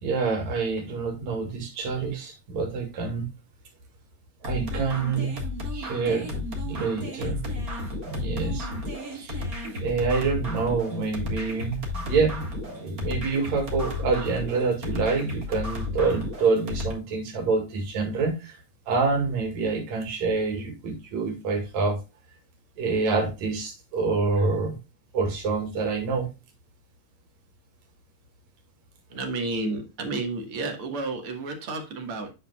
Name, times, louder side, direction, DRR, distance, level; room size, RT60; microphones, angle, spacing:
voice 1, 0.0-3.3 4.4-5.4 5.7-7.4 8.0-8.7 9.1-9.4 9.8-18.6 18.9-22.0 22.8-24.8 25.1-26.3, right 4 dB, 70° right, 3 dB, 3.2 m, -27 dB
sound 1, 4.4-16.9, left 2 dB, 35° right, 1.8 m, -33 dB
voice 2, 29.1-32.3, right 3 dB, 55° right, 4 dB, 2.2 m, -31 dB
8.8 x 5.8 x 2.3 m, 0.27 s
omnidirectional pair, 3.3 m